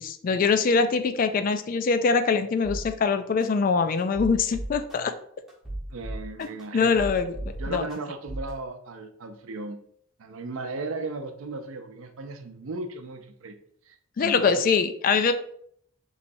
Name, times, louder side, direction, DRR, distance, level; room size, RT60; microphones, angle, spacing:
voice 1, 0.0-5.1 6.7-7.4 7.7-7.8 14.2-15.3, left 5 dB, 40° left, 9 dB, 0.3 m, -23 dB
sound 1, 2.6-2.8 3.4-3.5 4.0-5.0 5.5-6.6 7.0-8.0 8.3-8.5, right 1 dB, ahead, 1.3 m, -34 dB
voice 2, 5.9-7.1 7.6-9.8 10.2-13.5 13.8-14.6, right 3 dB, 80° right, 7 dB, 0.6 m, -36 dB
5.3 x 3.2 x 2.7 m, 0.67 s
head